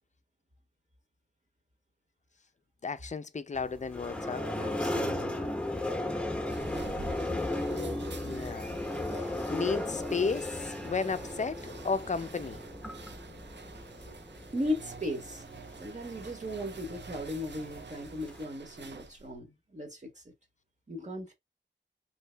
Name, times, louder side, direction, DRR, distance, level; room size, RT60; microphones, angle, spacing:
voice 1, 2.8-4.5 8.2-8.8 9.1-12.6, left 4 dB, 40° left, 0.4 m, -34 dB
sound 1, 3.5-18.4, left 1 dB, 5° left, 0.8 m, -36 dB
voice 2, 4.6-5.3 14.5-15.5 15.8-20.2 20.9-21.3, left 1 dB, 40° right, 1.0 m, -37 dB
sound 2, 6.4-19.4, right 5 dB, 70° right, 0.5 m, -49 dB
2.9 x 2.7 x 3.2 m
wide cardioid pair, 60°, 19 cm